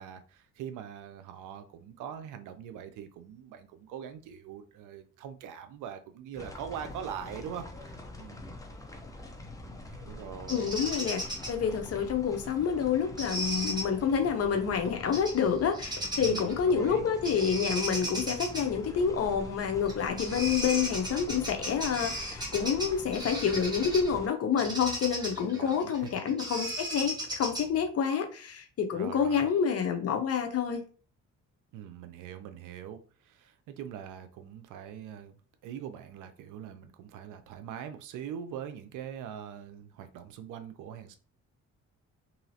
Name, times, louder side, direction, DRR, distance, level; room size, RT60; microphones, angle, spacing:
voice 1, 0.0-8.6 9.6-10.7 16.2-17.1 25.3-26.1 28.9-29.5 31.7-35.3 35.6-41.2, right 8 dB, 85° right, 0.6 m, -42 dB
sound 1, 6.3-24.3, left 2 dB, 10° left, 0.6 m, -45 dB
voice 2, 10.5-30.8, left 7 dB, 55° left, 0.7 m, -28 dB
Bird vocalization bird call bird song, 10.5-11.5 13.2-13.8 15.1-15.4 15.7-16.5 17.2-18.6 19.9-20.0 20.2-24.1 24.6-27.8, right 1 dB, 15° right, 1.3 m, -35 dB
3.0 x 2.7 x 2.8 m
cardioid pair, 90°, 30 cm